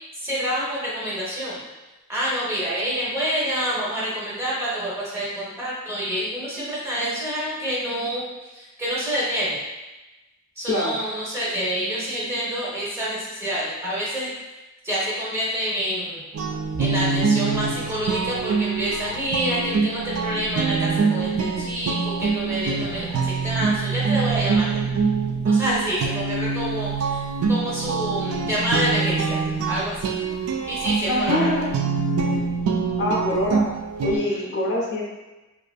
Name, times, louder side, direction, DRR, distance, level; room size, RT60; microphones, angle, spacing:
voice 1, 0.2-1.6 2.1-8.2 8.5-9.6 10.6-14.3 14.8-16.2 16.8-24.8 25.5-27.2 27.5-29.4 29.7-30.0 30.7-31.5 34.3-34.4, equal, 15° right, -7 dB, 0.6 m, -27 dB
voice 2, 10.7-11.0 31.1-31.7 33.0-33.6 34.0-35.0, left 1 dB, 55° left, -2 dB, 0.5 m, -24 dB
sound 1, 16.3-34.2, right 4 dB, 80° right, 0.3 m, -24 dB
2.6 x 2.4 x 2.2 m, 1.1 s
head